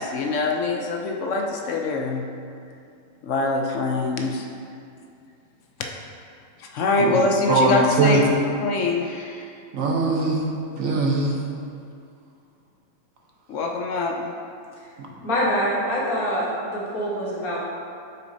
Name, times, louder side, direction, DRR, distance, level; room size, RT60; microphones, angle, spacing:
voice 1, 0.0-2.2 3.2-4.5 6.6-8.2 8.6-9.5 13.5-14.3, left 3 dB, 65° left, 1 dB, 0.8 m, -24 dB
voice 2, 7.5-8.2 9.7-10.4 10.7-11.3 15.0-15.1, right 3 dB, 70° right, -1 dB, 1.3 m, -21 dB
voice 3, 15.2-17.6, equal, 90° left, -6 dB, 1.8 m, -25 dB
7.5 x 6.1 x 2.7 m, 2.4 s
omnidirectional pair, 1.5 m